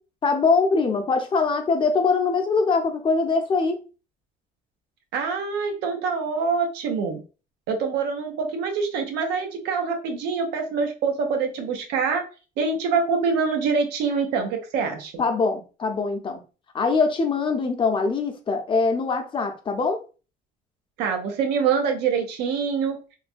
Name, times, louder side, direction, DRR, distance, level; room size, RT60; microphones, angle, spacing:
voice 1, 0.2-3.8 15.2-16.4 16.7-20.0, left 4 dB, 30° left, 0.6 m, -22 dB
voice 2, 5.1-7.2 7.7-12.2 12.6-15.2 21.0-23.0, right 5 dB, 90° right, 0.7 m, -25 dB
3.1 x 2.2 x 2.5 m
cardioid pair, 110°, 17 cm